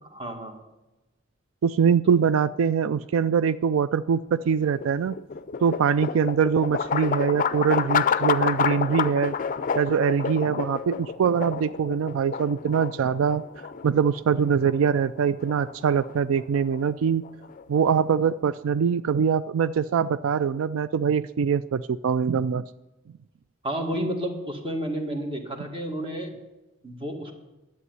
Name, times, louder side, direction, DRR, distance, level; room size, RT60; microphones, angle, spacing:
voice 1, 0.1-0.6 23.6-26.3 26.8-27.3, equal, 25° right, 3 dB, 1.9 m, -31 dB
voice 2, 1.6-5.2 5.6-9.3 9.8-13.4 13.8-17.2 17.7-22.6, right 7 dB, 80° right, 15 dB, 0.4 m, -23 dB
sound 1, 4.4-18.5, left 6 dB, 40° left, 0.5 m, -30 dB
11.0 x 8.2 x 9.5 m, 1.0 s
head